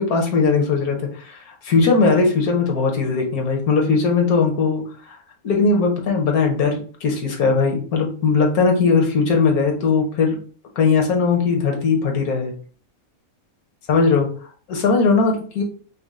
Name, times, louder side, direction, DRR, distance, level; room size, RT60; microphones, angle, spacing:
voice 1, 0.0-5.2 5.4-10.4 10.8-12.5 13.9-14.3 14.7-15.6, left 4 dB, 85° left, 1 dB, 1.5 m, -19 dB
5.3 x 2.1 x 3.6 m, 0.42 s
omnidirectional pair, 1.5 m